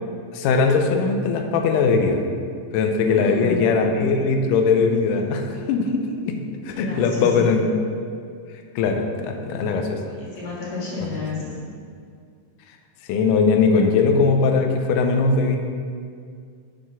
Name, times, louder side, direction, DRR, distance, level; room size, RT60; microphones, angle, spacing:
voice 1, 0.3-2.2 2.7-6.4 6.6-7.6 8.8-10.0 13.1-15.6, left 4 dB, 85° left, 4 dB, 2.2 m, -20 dB
voice 2, 3.0-3.7 6.7-7.5 9.9-11.6, left 4 dB, 55° left, -8 dB, 3.2 m, -31 dB
7.7 x 4.9 x 5.9 m, 2.2 s
omnidirectional pair, 3.7 m